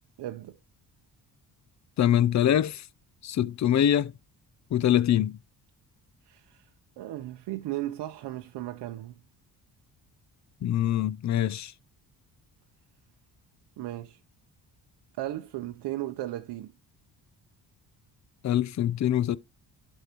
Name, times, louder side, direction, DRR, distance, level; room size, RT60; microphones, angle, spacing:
voice 1, 0.2-0.6 6.2-6.7 7.0-9.2 13.8-14.2 15.2-16.7, right 15 dB, 75° right, 0.7 m, -36 dB
voice 2, 2.0-2.8 3.2-4.1 4.7-5.3 10.6-11.7 18.4-19.4, left 11 dB, 45° left, 0.5 m, -24 dB
11.5 x 5.5 x 2.9 m
cardioid pair, 115°, 41 cm